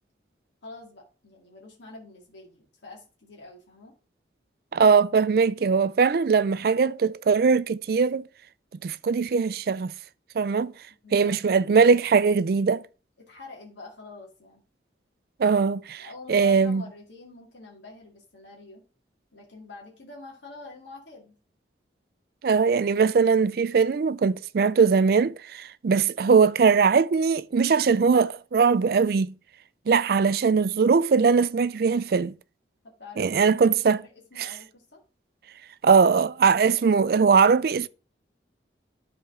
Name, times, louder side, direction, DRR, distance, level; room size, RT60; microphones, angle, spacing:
voice 1, 0.6-3.9 10.9-11.4 13.2-14.6 16.0-18.8 19.3-21.4 33.0-33.4 34.0-35.0, left 3 dB, 75° left, 2.2 m, -46 dB
voice 2, 4.7-8.2 8.8-9.9 10.4-10.7 11.1-12.8 15.4-16.8 22.4-29.3 29.9-32.4 33.2-34.0 34.4-34.5 35.8-37.9, right 5 dB, 55° right, 0.3 m, -21 dB
11.5 x 4.3 x 3.6 m
head